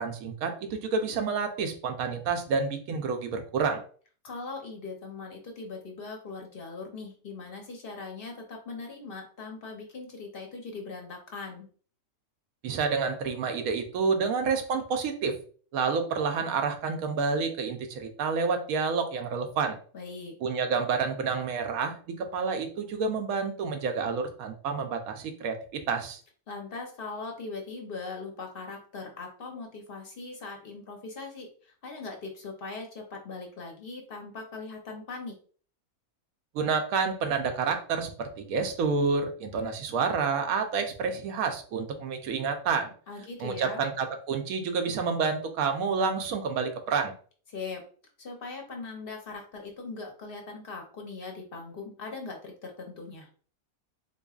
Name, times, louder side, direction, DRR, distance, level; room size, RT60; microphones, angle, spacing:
voice 1, 0.0-3.8 12.6-15.4 15.7-19.8 20.4-26.2 36.5-42.9 43.4-47.1, right 5 dB, 75° right, 6 dB, 1.0 m, -29 dB
voice 2, 4.2-11.7 19.9-20.3 26.5-35.3 43.1-43.9 47.5-47.8 48.2-53.3, left 4 dB, 50° left, 2 dB, 0.7 m, -40 dB
4.0 x 3.0 x 2.3 m, 0.44 s
omnidirectional pair, 1.6 m